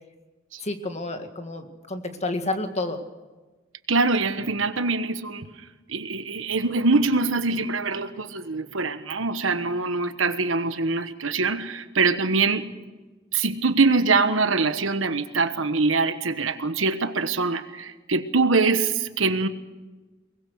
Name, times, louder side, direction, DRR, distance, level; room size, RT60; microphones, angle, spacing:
voice 1, 0.6-3.0, left 2 dB, 35° left, 7 dB, 1.8 m, -30 dB
voice 2, 3.9-5.4 5.9-12.7 13.3-19.5, right 3 dB, 80° right, 10 dB, 1.3 m, -23 dB
23.0 x 20.0 x 6.4 m, 1.2 s
head